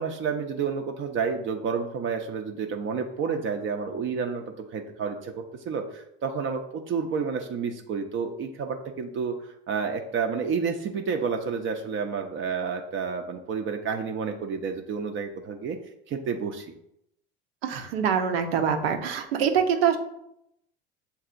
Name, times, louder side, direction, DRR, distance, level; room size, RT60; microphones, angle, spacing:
voice 1, 0.0-15.8 16.1-16.7, right 5 dB, 40° right, 4 dB, 0.5 m, -30 dB
voice 2, 17.6-20.0, right 7 dB, 85° right, 5 dB, 0.7 m, -24 dB
6.8 x 2.7 x 2.5 m, 0.79 s
hypercardioid pair, 75°, 30 cm